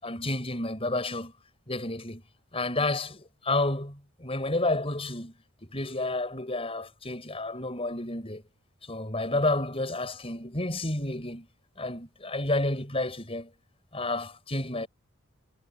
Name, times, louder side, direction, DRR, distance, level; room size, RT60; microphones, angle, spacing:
voice 1, 0.0-1.3 1.7-2.2 2.5-5.3 5.6-8.4 8.9-11.5 11.8-13.5 13.9-14.9, left 2 dB, 25° left, 5.8 m, -30 dB
head